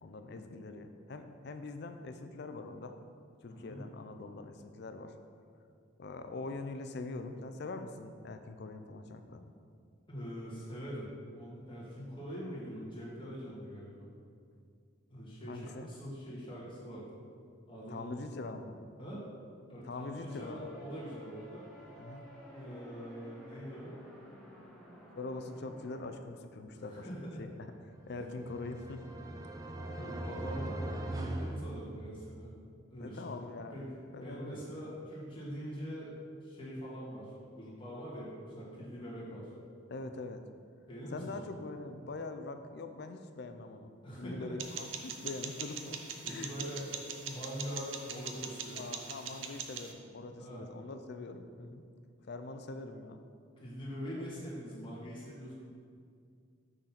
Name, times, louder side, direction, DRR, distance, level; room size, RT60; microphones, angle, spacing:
voice 1, 0.0-3.0 3.4-5.1 6.0-9.5 15.5-15.9 17.9-18.8 19.8-20.7 22.0-22.2 25.1-27.1 27.4-27.5 28.1-29.0 33.0-33.8 34.1-34.6 39.9-40.4 41.1-43.9 44.2-46.5 48.7-51.8 52.3-53.2, left 3 dB, 55° left, 8 dB, 0.4 m, -43 dB
voice 2, 3.5-3.8 10.1-14.1 15.1-17.1 17.7-18.2 19.0-19.2 19.7-21.7 22.5-23.9 26.7-27.4 28.2-28.3 29.9-30.7 31.1-32.5 32.9-33.2 33.7-33.9 34.2-36.1 36.4-37.3 37.6-39.5 40.9-41.4 44.0-44.6 46.2-46.9 47.2-48.8 50.4-50.6 53.6-55.5, equal, 25° left, -7 dB, 1.7 m, -43 dB
sound 1, 20.2-26.2, equal, 5° left, 0.9 m, -53 dB
sound 2, 28.0-32.5, right 1 dB, 15° right, 0.3 m, -40 dB
sound 3, 44.6-49.9, right 6 dB, 70° right, 0.6 m, -42 dB
6.4 x 4.0 x 5.8 m, 2.3 s
head